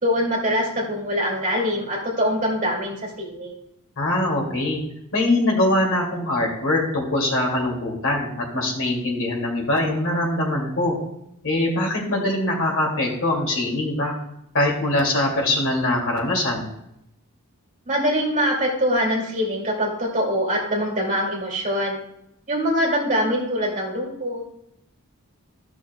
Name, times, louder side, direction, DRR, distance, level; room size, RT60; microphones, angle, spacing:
voice 1, 0.0-3.6 17.9-22.0 22.5-24.4, equal, 35° right, -2 dB, 2.5 m, -23 dB
voice 2, 4.0-4.8 5.1-11.0 11.4-14.1 14.5-16.7, left 1 dB, 65° left, -2 dB, 2.6 m, -22 dB
14.0 x 6.2 x 2.3 m, 0.78 s
head